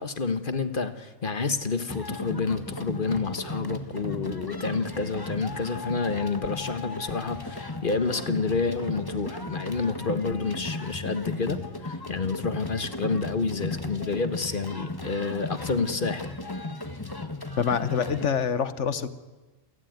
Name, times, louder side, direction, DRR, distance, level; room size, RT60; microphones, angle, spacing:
voice 1, 0.0-16.3, left 4 dB, 45° left, 10 dB, 1.5 m, -29 dB
sound 1, 1.9-18.3, left 2 dB, 20° left, 1.4 m, -36 dB
voice 2, 17.6-19.1, left 7 dB, 65° left, 13 dB, 1.4 m, -26 dB
28.0 x 16.0 x 9.4 m, 1.3 s
omnidirectional pair, 1.3 m